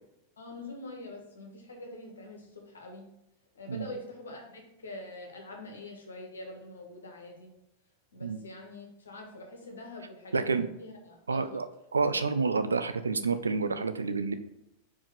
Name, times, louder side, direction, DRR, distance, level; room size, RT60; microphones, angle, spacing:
voice 1, 0.4-3.1 3.5-7.5 8.1-11.6, left 2 dB, 70° left, 2 dB, 1.5 m, -44 dB
voice 2, 10.3-10.7 11.3-11.7 11.9-14.3, right 4 dB, 75° right, 10 dB, 0.5 m, -28 dB
5.0 x 4.7 x 5.1 m, 0.88 s
figure-of-eight pair, 90°, 0 cm